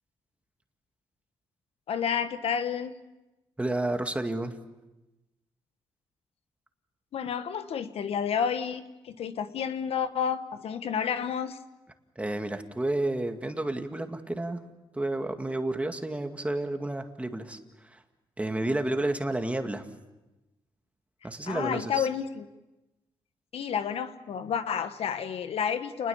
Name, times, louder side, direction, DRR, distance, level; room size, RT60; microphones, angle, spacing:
voice 1, 1.9-2.9 7.1-11.6 21.2-22.4 23.5-26.1, left 7 dB, 70° left, 10 dB, 1.3 m, -30 dB
voice 2, 3.6-4.6 12.2-14.6 14.9-17.6 18.4-19.9 21.2-22.1, right 2 dB, 10° right, 6 dB, 2.0 m, -30 dB
29.5 x 20.0 x 7.2 m, 1.0 s
cardioid pair, 95°, 10 cm